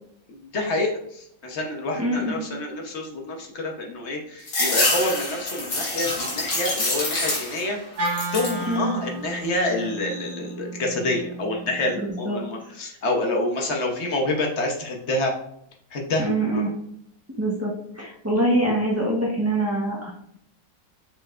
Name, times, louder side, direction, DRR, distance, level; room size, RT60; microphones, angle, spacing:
voice 1, 0.3-7.8 8.2-15.3 15.9-16.6, left 2 dB, 50° left, 1 dB, 0.9 m, -27 dB
voice 2, 2.0-2.4 8.7-9.0 12.0-12.7 16.2-16.7 17.4-20.1, right 1 dB, 25° right, -4 dB, 0.3 m, -25 dB
sound 1, 4.5-7.7 8.0-8.6 9.1-9.8, left 2 dB, 85° left, 2.4 m, -26 dB
Wind instrument woodwind instrument, 8.0-12.2, right 2 dB, 90° right, 1.6 m, -33 dB
6.5 x 3.2 x 2.4 m, 0.72 s
omnidirectional pair, 1.9 m